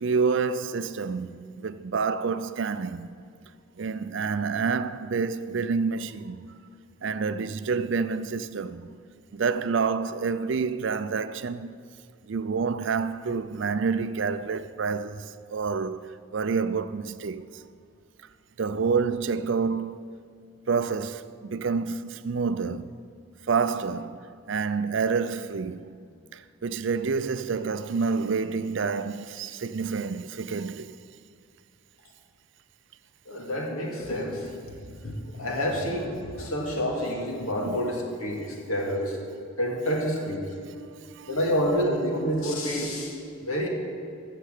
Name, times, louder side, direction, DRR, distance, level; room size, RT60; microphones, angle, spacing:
voice 1, 0.0-3.1 3.8-6.4 7.0-8.9 9.3-11.7 12.3-17.6 18.6-20.0 20.7-22.9 23.5-25.9 26.3-31.0 37.6-37.8 40.9-41.4, right 5 dB, 60° right, 0.4 m, -28 dB
voice 2, 33.3-34.5 34.9-39.2 39.6-40.5 41.3-43.7, equal, 85° left, 2.3 m, -28 dB
15.0 x 6.7 x 6.6 m
head